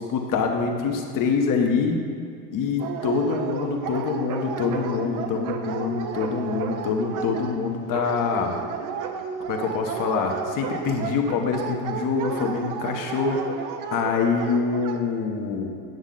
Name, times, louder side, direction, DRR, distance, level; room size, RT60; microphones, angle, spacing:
voice 1, 0.1-2.0 2.5-8.6 9.5-13.5 13.9-15.8, left 5 dB, 40° left, 3 dB, 1.2 m, -25 dB
Dog, 2.8-15.0, right 6 dB, 40° right, 0.8 m, -32 dB
9.1 x 6.2 x 3.9 m, 2.4 s
hypercardioid pair, 90°, 48 cm